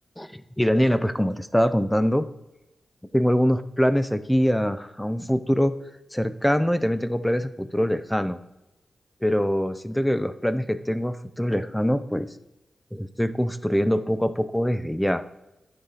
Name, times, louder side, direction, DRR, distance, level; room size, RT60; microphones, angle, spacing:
voice 1, 0.2-2.3 3.1-5.7 6.1-8.4 9.2-12.3 12.9-15.2, equal, 5° left, 12 dB, 0.4 m, -23 dB
9.7 x 4.1 x 3.8 m, 0.94 s
cardioid pair, 70°, 0 cm